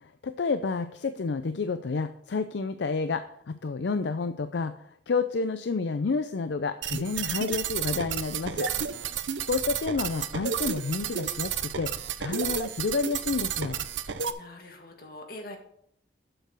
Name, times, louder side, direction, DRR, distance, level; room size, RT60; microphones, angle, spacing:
voice 1, 0.0-4.7 5.1-8.7 9.5-11.9 12.2-13.8, left 4 dB, 70° left, 10 dB, 0.5 m, -30 dB
sound 1, 6.8-14.3, right 8 dB, 85° right, 0.6 m, -32 dB
voice 2, 8.5-9.2 14.2-15.6, left 1 dB, 50° left, 3 dB, 1.8 m, -45 dB
7.7 x 6.7 x 6.4 m, 0.71 s
head